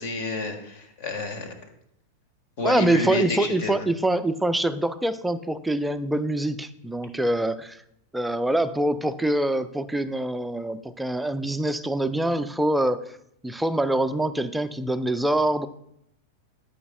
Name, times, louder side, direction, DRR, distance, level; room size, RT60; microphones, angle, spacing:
voice 1, 0.0-1.5 2.6-3.9, left 2 dB, 50° left, 6 dB, 1.6 m, -30 dB
voice 2, 2.6-7.8 8.1-13.0 13.4-15.7, right 1 dB, 5° right, 11 dB, 0.5 m, -25 dB
13.0 x 5.7 x 2.3 m, 0.76 s
figure-of-eight pair, 90°, 0 cm